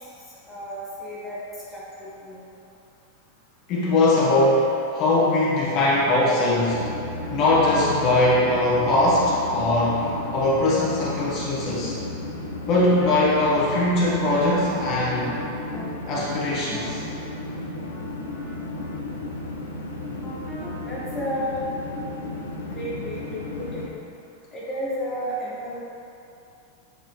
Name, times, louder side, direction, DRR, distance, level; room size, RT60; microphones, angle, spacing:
voice 1, 0.5-1.4 1.7-2.4 20.8-21.6 22.7-23.9 24.5-25.8, equal, 20° left, -8 dB, 1.2 m, -32 dB
voice 2, 3.7-4.7 4.9-6.8 7.3-11.9 12.7-15.3 16.1-17.0, left 2 dB, 40° left, -6 dB, 1.3 m, -21 dB
sound 1, 6.7-23.9, left 2 dB, 75° left, 0.6 m, -34 dB
sound 2, 13.0-13.1 13.7-13.9 14.5-14.7 15.2-15.4 15.7-16.2 16.7-19.0 20.2-20.7, equal, ahead, 1.3 m, -40 dB
8.2 x 3.8 x 3.2 m, 2.7 s
figure-of-eight pair, 90°, 0 cm